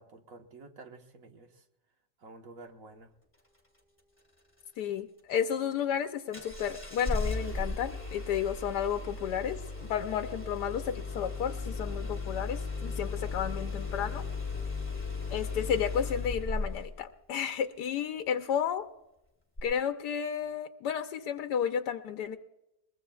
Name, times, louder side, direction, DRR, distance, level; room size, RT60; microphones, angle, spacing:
voice 1, 0.0-1.6 2.2-3.1, right 3 dB, 55° right, 5 dB, 1.6 m, -50 dB
voice 2, 4.8-14.3 15.3-18.9 19.6-22.4, left 8 dB, 90° left, 7 dB, 1.3 m, -32 dB
Engine starting, 6.3-16.9 19.6-19.7, left 3 dB, 5° left, 2.4 m, -36 dB
22.0 x 21.0 x 2.3 m, 0.90 s
omnidirectional pair, 1.7 m